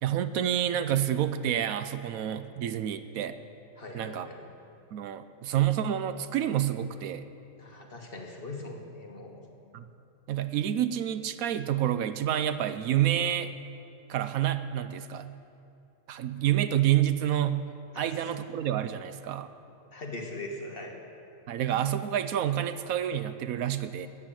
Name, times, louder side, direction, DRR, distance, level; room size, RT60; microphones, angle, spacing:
voice 1, 0.0-3.4 3.9-4.3 4.9-7.3 9.7-9.8 10.3-13.5 14.1-15.3 16.1-17.6 17.9-19.5 21.5-24.1, right 11 dB, 75° right, 12 dB, 1.0 m, -28 dB
voice 2, 3.8-4.5 7.6-9.5 17.9-18.3 19.9-21.0, left 2 dB, 40° left, 2 dB, 1.7 m, -41 dB
13.5 x 8.9 x 8.8 m, 2.6 s
omnidirectional pair, 1.5 m